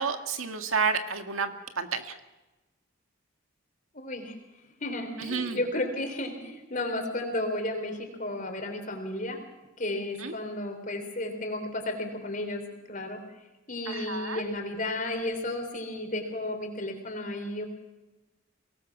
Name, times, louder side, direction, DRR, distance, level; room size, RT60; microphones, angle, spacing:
voice 1, 0.0-2.2 5.2-5.6 10.2-10.3 13.9-14.4, right 5 dB, 90° right, 6 dB, 1.9 m, -30 dB
voice 2, 3.9-4.3 4.8-9.4 9.8-12.6 12.9-13.2 13.7-17.6, left 1 dB, 40° left, 4 dB, 3.7 m, -33 dB
23.5 x 18.5 x 6.1 m, 1.1 s
head